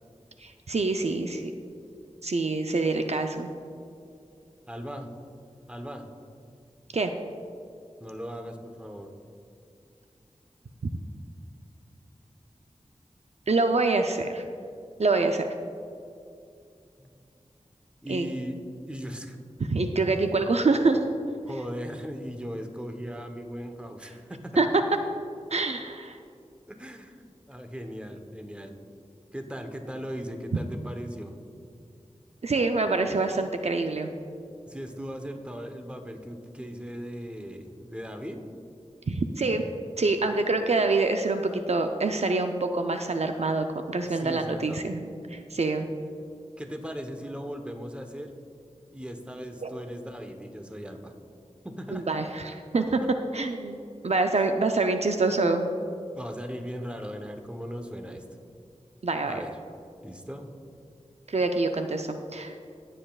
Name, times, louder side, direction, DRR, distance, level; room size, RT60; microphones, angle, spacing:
voice 1, 0.4-1.5 2.2-3.5 6.9-7.1 13.5-14.4 15.0-15.5 18.1-18.2 19.7-21.0 24.6-24.8 25.5-26.2 32.4-34.1 39.1-39.7 40.0-45.0 45.3-45.9 49.6-49.7 51.9-53.0 53.3-53.8 54.0-55.7 59.0-59.4 61.3-62.5, right 3 dB, 60° right, 6 dB, 0.5 m, -26 dB
voice 2, 4.7-5.2 5.7-6.1 8.0-9.1 17.0-17.1 18.0-18.6 18.9-19.4 21.4-24.6 26.7-27.2 27.5-28.8 29.3-31.4 34.6-38.4 44.0-44.9 46.6-48.3 48.9-51.1 51.6-52.1 53.0-53.1 54.3-54.5 56.1-58.2 59.3-59.5 60.0-60.5, equal, 10° right, 5 dB, 1.0 m, -38 dB
16.0 x 7.6 x 2.4 m, 2.5 s
wide cardioid pair, 45°, 12 cm